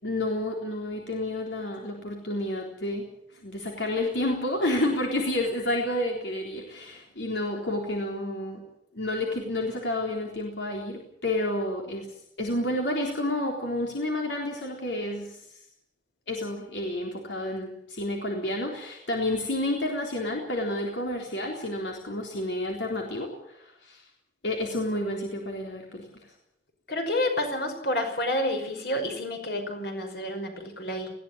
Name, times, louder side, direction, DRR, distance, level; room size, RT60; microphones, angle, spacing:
voice 1, 0.0-3.0 3.3-8.6 8.9-12.1 12.4-15.4 16.3-24.0 24.4-26.1, left 1 dB, 80° left, 0 dB, 3.9 m, -30 dB
voice 2, 26.9-31.1, left 1 dB, 65° left, 5 dB, 5.6 m, -29 dB
20.5 x 16.5 x 8.8 m, 0.74 s
head